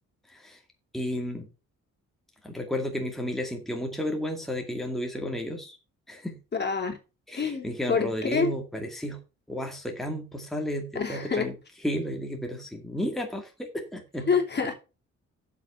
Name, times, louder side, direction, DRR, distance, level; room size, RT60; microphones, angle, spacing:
voice 1, 0.3-0.6 0.9-1.5 2.4-5.8 6.1-6.4 7.3-9.2 9.5-11.5 11.8-14.3, equal, ahead, 2.1 m, -32 dB
voice 2, 6.5-7.0 7.4-8.5 10.9-11.5 14.3-14.7, left 5 dB, 35° left, 2.9 m, -27 dB
7.6 x 5.8 x 7.2 m
cardioid pair, 90°, 30 cm